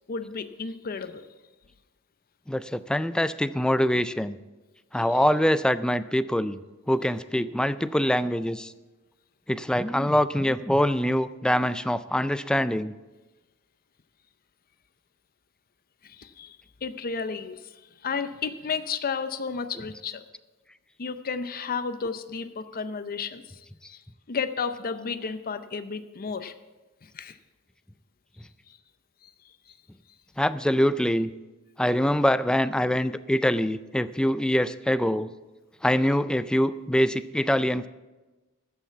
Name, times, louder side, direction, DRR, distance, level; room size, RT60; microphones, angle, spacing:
voice 1, 0.1-1.3 16.0-17.8 18.0-20.2 21.0-23.6 23.9-24.0 24.3-26.5 27.0-27.4 28.7-28.8 29.2-29.3, left 5 dB, 40° left, 11 dB, 0.6 m, -32 dB
voice 2, 2.5-4.4 4.9-6.6 6.9-8.7 9.5-12.9 30.4-31.3 31.8-35.3 35.8-37.9, equal, 5° left, 14 dB, 0.3 m, -24 dB
13.0 x 5.8 x 8.2 m, 1.2 s
head